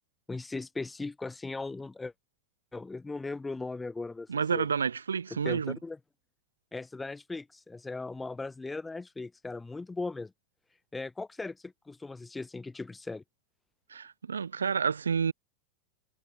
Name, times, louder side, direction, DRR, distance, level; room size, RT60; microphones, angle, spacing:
voice 1, 0.3-2.1 2.7-4.7 5.3-6.0 6.7-10.3 10.9-13.2, left 3 dB, 10° left, 0.7 m, -38 dB
voice 2, 4.3-5.8 13.9-15.3, right 6 dB, 70° right, 0.5 m, -29 dB
figure-of-eight pair, 90°, 0 cm